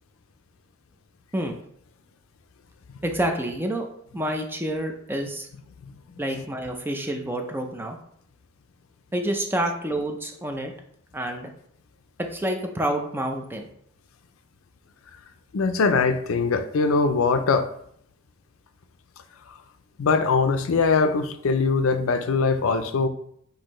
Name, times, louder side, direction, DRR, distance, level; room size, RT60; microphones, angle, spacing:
voice 1, 3.0-3.8 4.1-5.5 6.2-8.0 9.1-10.7 11.1-11.5 12.2-13.7, right 1 dB, 10° right, 3 dB, 0.5 m, -28 dB
voice 2, 15.5-17.7 20.0-23.1, left 4 dB, 90° left, 9 dB, 0.5 m, -22 dB
6.3 x 2.7 x 3.0 m, 0.68 s
head